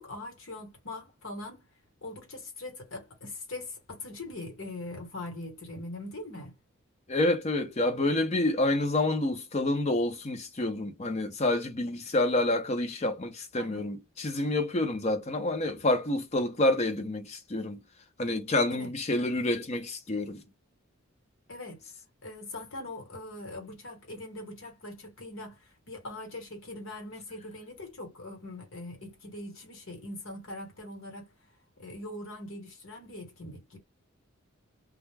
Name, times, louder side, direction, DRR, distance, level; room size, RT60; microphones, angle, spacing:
voice 1, 0.0-1.7 2.0-6.6 13.6-13.9 18.7-18.9 21.5-21.8 22.2-31.3 31.8-33.8, left 2 dB, 70° left, 1.2 m, -42 dB
voice 2, 7.1-17.8 18.2-20.4, left 2 dB, 30° left, 0.6 m, -28 dB
2.3 x 2.1 x 3.2 m
head